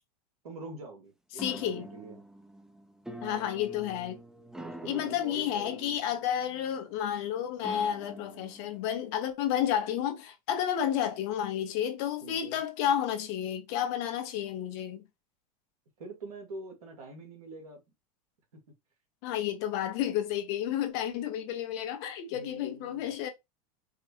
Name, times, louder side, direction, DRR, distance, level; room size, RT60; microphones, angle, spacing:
voice 1, 0.4-2.2 3.2-3.5 4.6-6.0 12.2-12.6 16.0-17.8 22.3-23.1, right 2 dB, 90° right, 1.8 m, -45 dB
voice 2, 1.3-1.8 3.2-4.2 4.8-15.1 19.2-23.3, left 10 dB, 55° left, 1.0 m, -31 dB
sound 1, 1.4-8.8, right 1 dB, 5° right, 0.6 m, -47 dB
4.7 x 2.2 x 3.0 m
hypercardioid pair, 105°, 19 cm